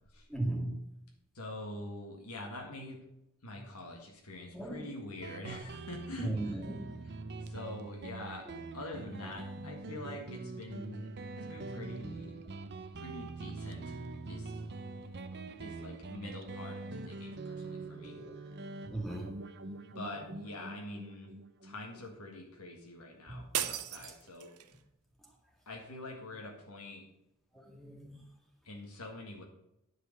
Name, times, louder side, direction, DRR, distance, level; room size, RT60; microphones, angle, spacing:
voice 1, 0.3-0.8 3.5-3.6 4.5-4.9 6.2-7.0 9.2-9.3 17.9-18.3 18.8-19.3 20.2-20.3 23.3-23.7 27.5-28.2, right 1 dB, ahead, 0 dB, 2.0 m, -38 dB
voice 2, 1.4-3.0 3.4-6.6 7.4-8.5 8.7-11.1 11.4-12.4 13.0-14.0 14.3-14.6 15.3-18.2 19.8-21.3 21.6-24.5 25.7-27.0 28.6-29.4, left 1 dB, 90° left, 0 dB, 1.8 m, -45 dB
Guitar, 5.2-22.4, right 3 dB, 50° right, 0.7 m, -44 dB
sound 1, 23.5-24.8, right 11 dB, 85° right, 0.7 m, -36 dB
10.0 x 5.0 x 6.6 m, 0.84 s
head